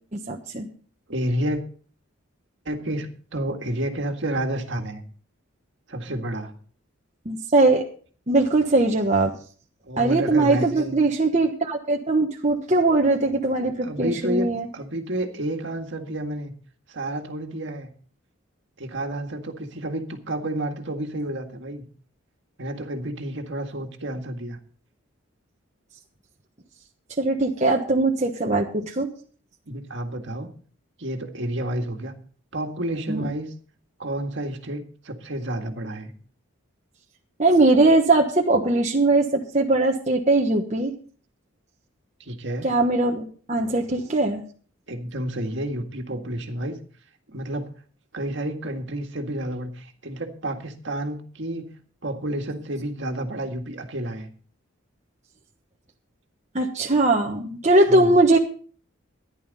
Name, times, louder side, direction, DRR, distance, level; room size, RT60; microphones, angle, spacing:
voice 1, 0.1-0.7 7.2-7.8 8.3-9.3 10.0-14.7 27.2-29.1 33.1-33.3 37.4-40.9 42.6-44.4 56.5-58.4, right 2 dB, 35° right, 1 dB, 1.2 m, -20 dB
voice 2, 1.1-1.6 2.7-5.0 5.9-6.5 9.8-11.0 13.8-16.5 16.9-17.9 18.8-21.8 22.6-24.6 29.7-30.5 31.0-32.1 32.5-33.5 34.0-36.1 42.2-42.7 44.9-46.8 47.3-47.7 48.1-51.7 52.0-54.3 57.9-58.2, right 1 dB, 60° right, 4 dB, 1.9 m, -30 dB
15.0 x 11.0 x 4.1 m, 0.43 s
head